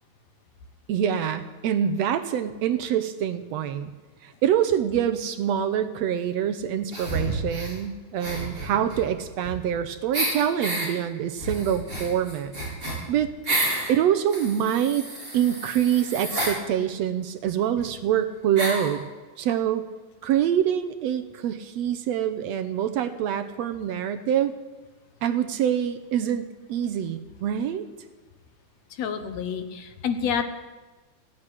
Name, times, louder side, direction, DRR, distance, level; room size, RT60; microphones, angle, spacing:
voice 1, 0.9-3.9 4.2-12.5 13.1-13.3 13.9-15.1 15.3-19.0 19.4-19.9 20.2-24.5 25.2-27.8, right 9 dB, 75° right, 8 dB, 1.8 m, -25 dB
sound 1, 6.9-7.8 8.2-9.8 10.1-10.9 11.4-13.9 14.3-16.6 17.5-17.6 17.8-17.9 18.6-18.9, right 1 dB, 20° right, 4.9 m, -30 dB
voice 2, 29.0-30.4, left 7 dB, 70° left, 9 dB, 2.1 m, -28 dB
15.0 x 9.7 x 9.9 m, 1.3 s
omnidirectional pair, 3.4 m